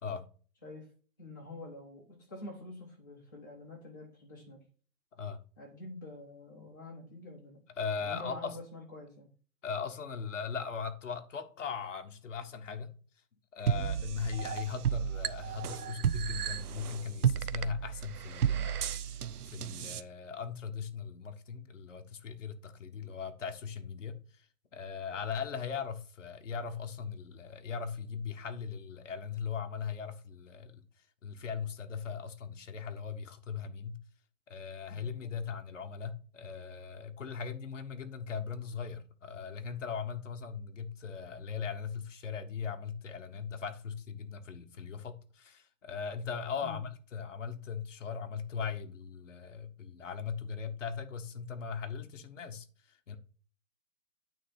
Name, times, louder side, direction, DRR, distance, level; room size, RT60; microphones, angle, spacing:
voice 1, 1.2-4.6 5.6-7.6 8.0-9.3 17.6-17.8 34.9-35.4 46.6-46.8, left 2 dB, 10° left, 1.0 m, -47 dB
voice 2, 7.8-8.6 9.6-12.9 13.5-19.2 19.5-30.8 31.2-34.0 34.5-53.2, left 6 dB, 50° left, 0.9 m, -39 dB
sound 1, 13.7-20.0, right 8 dB, 70° right, 0.6 m, -33 dB
9.1 x 3.2 x 5.7 m
hypercardioid pair, 180°, 48 cm